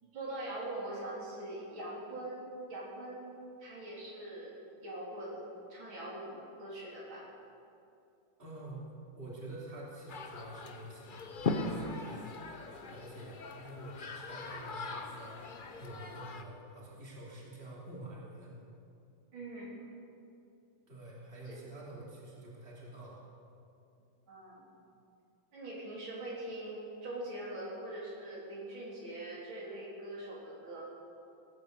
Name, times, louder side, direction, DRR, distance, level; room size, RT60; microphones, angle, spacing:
voice 1, 0.0-2.4 2.7-3.3 3.6-5.4 5.7-7.2 19.3-19.8 21.5-21.6 24.3-24.7 25.5-30.8, right 1 dB, 85° right, -6 dB, 4.4 m, -42 dB
voice 2, 8.4-12.4 12.9-15.4 15.8-18.5 20.9-23.2, right 1 dB, 30° right, -5 dB, 3.1 m, -47 dB
sound 1, 10.1-16.4, left 3 dB, 50° left, 0.6 m, -40 dB
19.0 x 9.4 x 6.6 m, 2.6 s
omnidirectional pair, 2.1 m